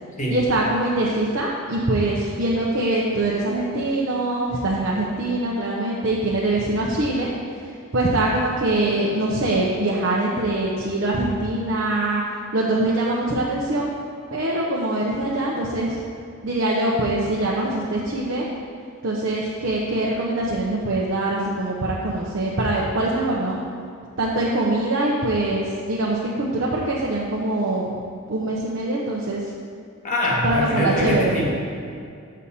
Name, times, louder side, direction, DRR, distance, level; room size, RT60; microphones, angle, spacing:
voice 1, 0.3-7.3 7.6-12.2 12.5-13.9 14.3-16.0 16.4-18.5 19.0-23.6 24.2-28.0 28.3-29.5 30.4-31.4, right 2 dB, 60° right, -4 dB, 0.8 m, -23 dB
voice 2, 30.0-31.5, left 1 dB, 35° left, -3 dB, 1.2 m, -23 dB
7.0 x 6.3 x 4.2 m, 2.3 s
head